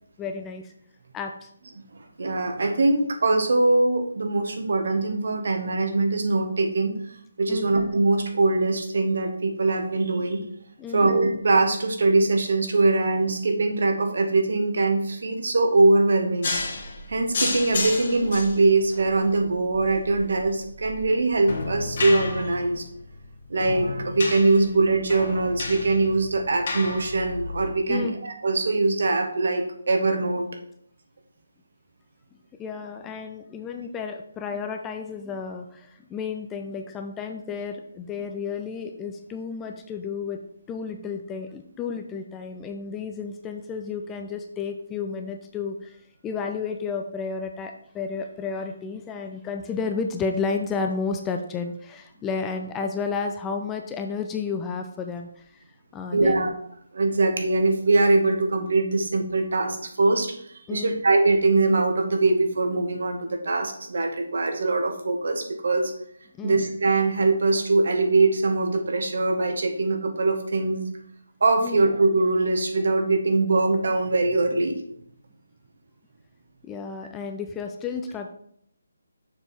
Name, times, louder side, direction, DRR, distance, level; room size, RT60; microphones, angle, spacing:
voice 1, 0.2-0.7 1.1-1.5 7.5-7.8 10.8-11.1 27.9-28.1 32.6-40.4 40.7-55.6 55.9-56.5 60.7-61.0 66.4-66.6 71.6-71.9 76.6-78.3, left 5 dB, 10° left, 4 dB, 0.5 m, -32 dB
voice 2, 2.2-7.0 7.4-10.4 10.9-16.5 17.1-22.8 23.5-30.5 56.1-56.5 56.9-65.9 66.4-70.9 71.4-74.8, right 3 dB, 55° right, 4 dB, 1.4 m, -22 dB
sound 1, 16.4-27.7, left 3 dB, 45° left, 1.7 m, -32 dB
6.8 x 5.4 x 4.3 m, 0.68 s
figure-of-eight pair, 145°, 0 cm